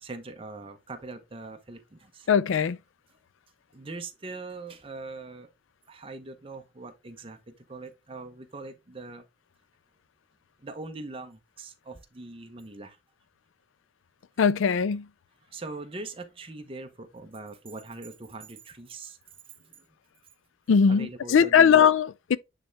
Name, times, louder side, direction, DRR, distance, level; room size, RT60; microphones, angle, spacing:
voice 1, 0.0-2.3 3.7-5.5 5.9-9.3 10.6-13.0 15.5-19.2 19.6-19.9 20.9-21.8, right 3 dB, 30° right, 0.8 m, -41 dB
voice 2, 2.3-2.8 14.4-15.1 20.7-22.4, left 7 dB, 85° left, 0.4 m, -20 dB
8.9 x 3.4 x 3.3 m
head